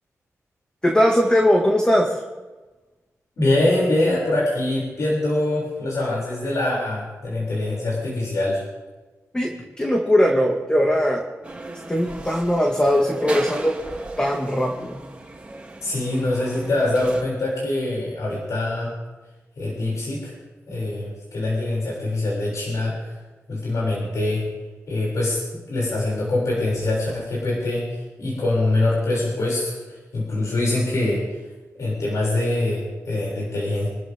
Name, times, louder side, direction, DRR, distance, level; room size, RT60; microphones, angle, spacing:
voice 1, 0.8-2.2 9.3-11.2 11.9-13.8 14.2-15.0, equal, 15° left, 0 dB, 2.2 m, -20 dB
voice 2, 3.4-8.6 15.8-18.9 19.6-20.4 20.7-23.1 23.5-24.4 24.9-25.4 25.7-31.2 31.8-33.9, left 2 dB, 75° left, -6 dB, 7.1 m, -24 dB
sound 1, 11.4-17.2, right 2 dB, 20° right, 3.1 m, -36 dB
28.0 x 13.5 x 3.8 m, 1.2 s
wide cardioid pair, 100°, 6 cm